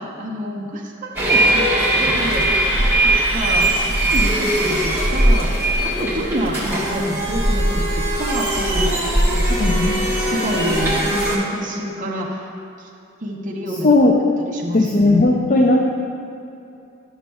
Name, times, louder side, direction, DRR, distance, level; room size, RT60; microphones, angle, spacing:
voice 1, 0.0-1.7 2.0-3.7 4.1-12.5 12.8-12.9 13.2-13.9 14.5-15.2, right 1 dB, 35° right, -3 dB, 0.8 m, -28 dB
sound 1, 1.2-11.4, right 1 dB, 10° right, 1.3 m, -19 dB
voice 2, 9.6-9.9 13.8-14.1 14.7-15.8, left 2 dB, 40° left, -1 dB, 0.4 m, -15 dB
12.0 x 6.3 x 2.3 m, 2.6 s
head